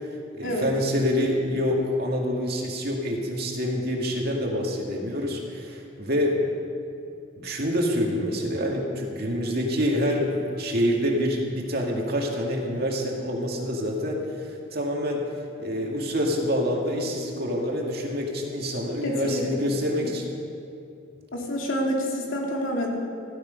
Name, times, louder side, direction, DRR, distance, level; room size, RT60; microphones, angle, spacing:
voice 1, 0.4-6.4 7.4-15.2 15.6-20.2, equal, 50° right, 0 dB, 2.2 m, -26 dB
voice 2, 19.0-19.7 21.3-22.9, equal, 80° left, -1 dB, 2.7 m, -28 dB
15.0 x 13.5 x 5.4 m, 2.6 s
head